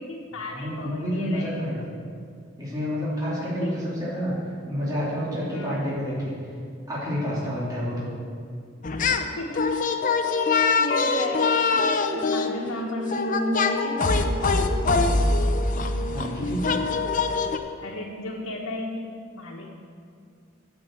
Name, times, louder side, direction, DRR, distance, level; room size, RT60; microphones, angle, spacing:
voice 1, 0.0-1.8 3.4-3.7 5.5-5.8 7.4-7.5 9.4-9.8 10.4-14.4 14.7-15.4 17.8-19.7, left 1 dB, 80° left, -3 dB, 1.3 m, -33 dB
voice 2, 0.5-1.8 2.6-4.3 4.7-6.3 6.9-8.1 16.1-16.7, equal, 20° right, -8 dB, 2.8 m, -29 dB
sound 1, 8.8-9.3 9.5-17.6, left 3 dB, 40° left, 0.6 m, -24 dB
9.3 x 7.8 x 7.5 m, 2.3 s
head